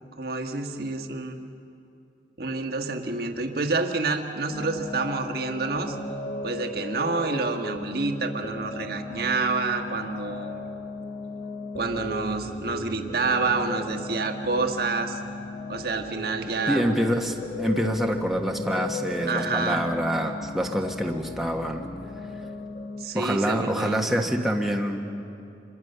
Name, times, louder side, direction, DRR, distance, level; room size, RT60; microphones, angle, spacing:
voice 1, 0.2-1.4 2.4-6.0 6.4-10.6 11.8-15.2 15.7-16.8 19.3-19.9 23.0-24.3, right 3 dB, 55° right, 5 dB, 1.4 m, -28 dB
sound 1, 4.5-23.0, left 2 dB, 50° left, 1.9 m, -36 dB
voice 2, 16.7-21.9 23.1-25.1, equal, ahead, 1 dB, 1.3 m, -26 dB
26.5 x 22.0 x 6.7 m, 2.7 s
head